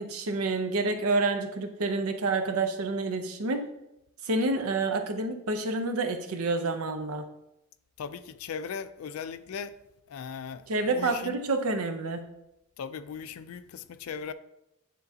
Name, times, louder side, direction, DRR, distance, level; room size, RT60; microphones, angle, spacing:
voice 1, 0.0-3.7 4.2-7.3 10.7-12.2, right 3 dB, 90° right, 0.7 m, -28 dB
voice 2, 8.0-9.8 10.1-10.6 10.9-11.4 12.8-14.3, left 6 dB, 75° left, 0.4 m, -38 dB
9.2 x 3.8 x 2.8 m
head